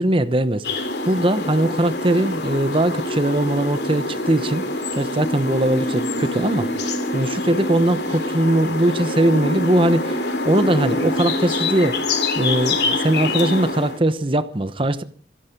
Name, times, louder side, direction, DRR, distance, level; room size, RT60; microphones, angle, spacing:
voice 1, 0.0-4.6 4.9-12.0 12.4-15.0, right 1 dB, 30° right, 0.9 m, -20 dB
sound 1, 0.6-14.0, left 2 dB, 70° left, 3.1 m, -25 dB
24.5 x 10.5 x 5.2 m
head